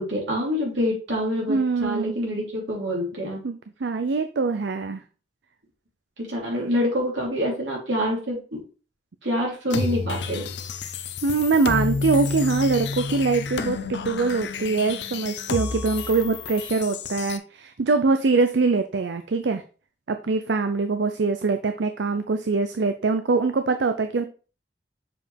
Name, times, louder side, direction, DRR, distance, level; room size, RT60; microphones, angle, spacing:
voice 1, 0.0-3.4 6.2-8.6 9.2-10.4, equal, 90° right, -2 dB, 3.3 m, -26 dB
voice 2, 1.5-2.1 3.4-3.5 3.8-5.0 6.6-6.7 11.2-19.6 20.1-24.2, right 4 dB, 75° right, 8 dB, 0.5 m, -23 dB
sound 1, 9.7-17.4, left 4 dB, 70° left, 0.6 m, -30 dB
6.9 x 5.1 x 3.4 m, 0.37 s
head